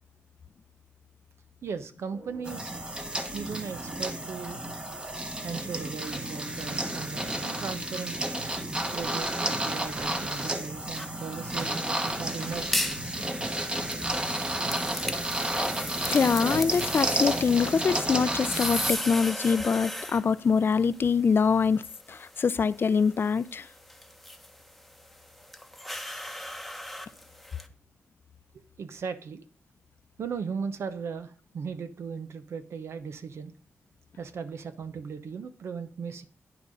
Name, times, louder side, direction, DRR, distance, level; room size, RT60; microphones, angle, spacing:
voice 1, 1.6-2.8 3.3-4.6 5.4-8.1 8.9-12.8 28.8-29.4 30.2-33.5 34.2-36.3, right 6 dB, 85° right, 0.8 m, -37 dB
sound 1, 2.1-17.5, right 2 dB, 65° right, 2.1 m, -46 dB
sound 2, 2.5-18.9, right 1 dB, 20° right, 1.2 m, -31 dB
sound 3, 11.0-27.7, equal, ahead, 0.9 m, -38 dB
voice 2, 16.0-21.8 22.1-23.7, left 5 dB, 55° left, 0.4 m, -24 dB
9.4 x 6.0 x 5.2 m
cardioid pair, 85°, 4 cm